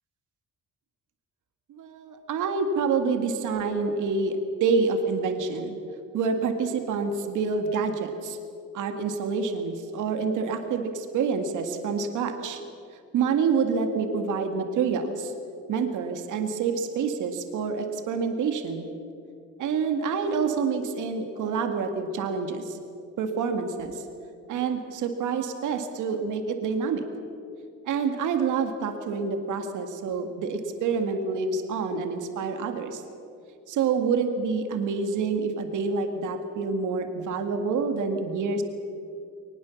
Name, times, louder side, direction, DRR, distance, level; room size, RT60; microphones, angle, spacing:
voice 1, 1.7-5.8 6.1-8.4 8.7-12.6 13.1-15.3 15.7-18.9 19.6-22.8 23.2-24.0 24.5-27.0 27.9-33.0 33.7-38.6, right 5 dB, 80° right, 6 dB, 2.0 m, -27 dB
22.0 x 20.0 x 7.1 m, 2.5 s
cardioid pair, 90°, 30 cm